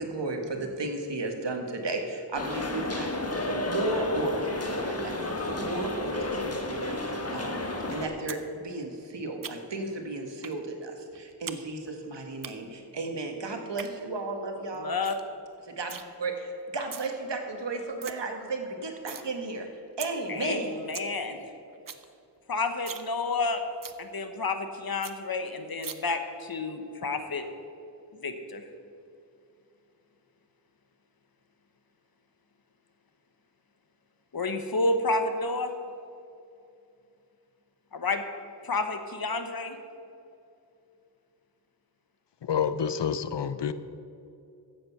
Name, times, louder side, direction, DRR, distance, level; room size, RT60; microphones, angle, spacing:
voice 1, 0.0-14.9 15.6-19.7 20.0-20.7, right 2 dB, 80° right, 1.6 m, -34 dB
sound 1, 2.3-8.1, left 2 dB, 35° left, 1.4 m, -32 dB
sound 2, 8.3-8.4 8.7-9.8 10.4-10.6 10.9-11.6 11.9-12.5 13.5-13.9 14.4-14.5 14.7-14.8 15.0-15.3 15.5-16.0 16.7-17.1 17.5-17.6 17.8-18.1 18.5-19.3 19.6-19.7 20.0-20.1 20.5-20.6 20.8-21.1 21.4-21.5 21.7-22.0 22.4-22.5 22.8-23.1 23.4-23.5 23.8-24.0 24.4-24.5 24.7-24.8 25.0-25.1 25.8-25.9, right 7 dB, 50° right, 0.7 m, -40 dB
voice 2, 14.8-15.1 20.3-21.4 22.5-23.6 24.0-27.4 28.2-28.6 34.3-35.7 37.9-38.2 38.6-39.8, left 3 dB, 55° left, 1.1 m, -30 dB
voice 3, 42.4-43.7, left 7 dB, 75° left, 0.7 m, -28 dB
14.5 x 7.8 x 5.8 m
wide cardioid pair, 90°, 42 cm